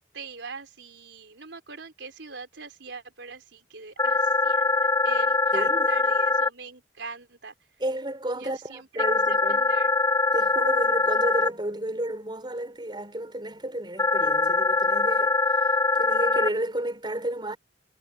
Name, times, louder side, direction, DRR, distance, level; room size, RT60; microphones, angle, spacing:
voice 1, 0.1-4.8 5.0-7.5 8.4-9.9, right 4 dB, 85° right, 3.9 m, -42 dB
sound 1, 4.0-6.5 9.0-11.5 14.0-16.5, left 3 dB, 20° left, 0.9 m, -23 dB
voice 2, 5.5-6.1 7.8-9.6 10.3-17.6, right 1 dB, 25° right, 5.6 m, -32 dB
head